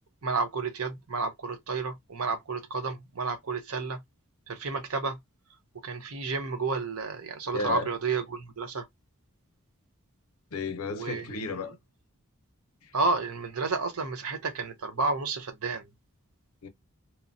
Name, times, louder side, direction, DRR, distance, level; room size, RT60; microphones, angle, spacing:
voice 1, 0.2-4.0 4.5-5.2 5.8-8.9 10.9-11.4 12.9-15.9, right 4 dB, 75° right, 0.8 m, -31 dB
voice 2, 7.5-7.9 10.5-11.8 12.8-12.9 16.6-16.7, left 3 dB, 80° left, 0.6 m, -33 dB
2.9 x 2.2 x 2.5 m
head